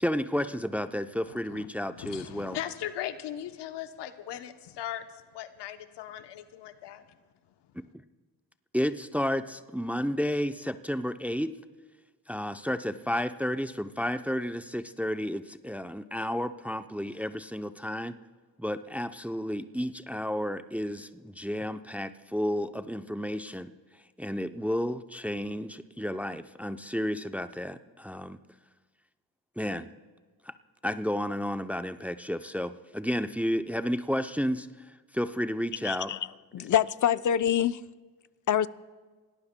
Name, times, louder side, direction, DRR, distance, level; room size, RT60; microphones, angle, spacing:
voice 1, 0.0-2.6 7.7-7.8 8.7-11.5 12.3-18.2 18.6-23.7 24.2-28.4 29.6-29.9 30.4-30.5 30.8-36.1, equal, 5° right, 10 dB, 0.6 m, -32 dB
voice 2, 1.3-1.7 2.0-7.2, left 11 dB, 85° left, 9 dB, 0.9 m, -39 dB
voice 3, 35.8-36.2 36.5-37.8 38.5-38.7, left 10 dB, 50° left, 14 dB, 0.6 m, -25 dB
27.0 x 18.0 x 2.2 m, 1.4 s
supercardioid pair, 55°, 40 cm